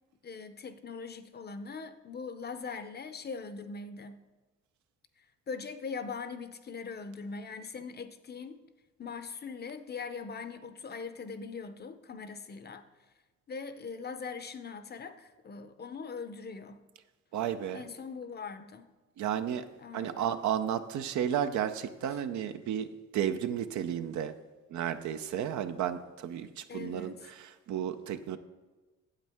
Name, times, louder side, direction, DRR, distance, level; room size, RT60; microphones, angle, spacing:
voice 1, 0.2-4.2 5.2-8.6 9.0-12.9 13.5-16.8 17.7-18.9 19.8-20.3 26.7-27.3, left 5 dB, 35° left, 0.6 m, -41 dB
voice 2, 17.3-17.8 19.2-19.7 19.9-24.4 24.7-28.4, right 9 dB, 70° right, 0.6 m, -33 dB
9.0 x 7.5 x 3.5 m
cardioid pair, 90°, 30 cm